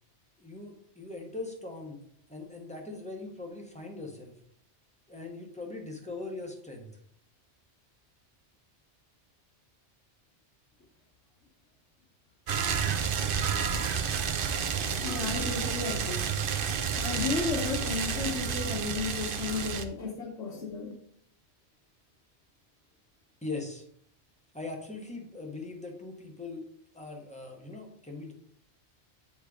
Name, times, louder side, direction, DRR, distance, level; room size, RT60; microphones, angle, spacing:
voice 1, 0.4-2.0 2.3-4.3 5.1-6.9 23.4-23.8 24.5-26.6 26.9-28.3, left 3 dB, 5° left, 0 dB, 1.3 m, -40 dB
sound 1, 12.5-19.8, right 7 dB, 55° right, 0.7 m, -30 dB
voice 2, 15.0-16.3 16.9-20.9, left 4 dB, 85° left, -3 dB, 1.4 m, -33 dB
8.5 x 3.4 x 4.9 m, 0.66 s
omnidirectional pair, 1.2 m